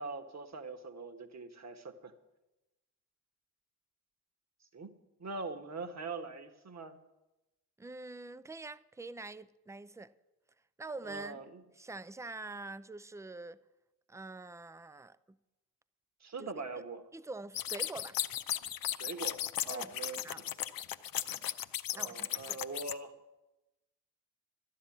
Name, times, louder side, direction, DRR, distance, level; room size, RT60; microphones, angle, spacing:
voice 1, 0.0-2.1 4.7-4.9 5.2-7.0 11.0-11.6 16.2-17.0 18.9-20.5 21.9-23.1, right 3 dB, 35° right, 1.5 m, -42 dB
voice 2, 7.8-10.1 10.8-11.4 11.8-13.6 14.1-15.4 16.4-16.5 17.1-18.2 19.7-19.9 20.2-20.4 21.3-21.5 21.9-22.6, right 3 dB, 5° right, 0.5 m, -45 dB
sound 1, 17.5-22.9, left 11 dB, 45° left, 0.7 m, -36 dB
12.5 x 9.8 x 7.3 m
hypercardioid pair, 40°, 47 cm